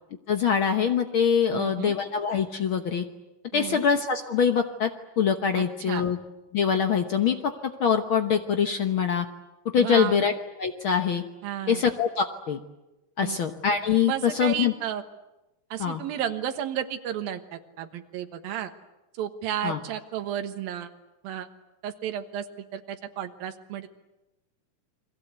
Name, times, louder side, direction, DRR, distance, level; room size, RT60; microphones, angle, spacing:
voice 1, 0.3-3.0 3.5-4.9 5.2-6.2 6.5-9.3 9.7-10.3 10.6-11.2 11.7-12.6 13.2-14.7 15.8-16.0 19.6-19.8, left 7 dB, 75° left, 6 dB, 1.1 m, -24 dB
voice 2, 1.5-1.9 3.5-3.8 5.6-6.0 9.8-10.2 11.4-11.8 13.2-13.4 14.1-15.0 15.7-18.7 19.2-20.9 21.2-21.5 21.8-22.4 22.7-23.9, right 10 dB, 90° right, 7 dB, 3.2 m, -32 dB
29.5 x 23.0 x 8.2 m, 1.0 s
omnidirectional pair, 4.0 m